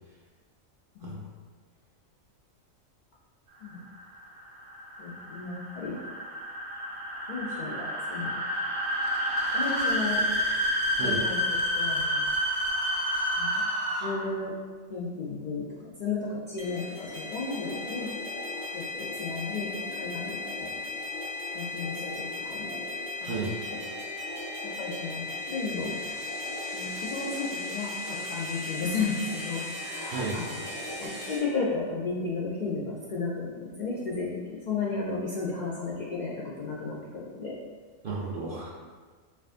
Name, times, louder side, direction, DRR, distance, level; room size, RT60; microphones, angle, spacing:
sound 1, 3.7-14.4, equal, 80° right, 1.4 m, -29 dB
voice 1, 5.0-6.0 7.3-8.3 9.5-10.2 11.0-11.4 11.7-12.2 13.4-13.7 14.0-14.5 14.9-18.1 18.7-20.8 21.5-22.1 22.4-22.7 23.2-23.3 23.6-23.7 24.6-25.2 25.5-26.0 26.7-30.5 31.0-37.6, left 4 dB, 75° left, -5 dB, 0.4 m, -34 dB
sound 2, 16.6-31.4, left 2 dB, 45° left, 0.9 m, -36 dB
voice 2, 23.2-23.5 30.1-30.4 38.0-38.7, right 4 dB, 60° right, -6 dB, 0.6 m, -33 dB
4.7 x 2.4 x 2.4 m, 1.4 s
omnidirectional pair, 1.4 m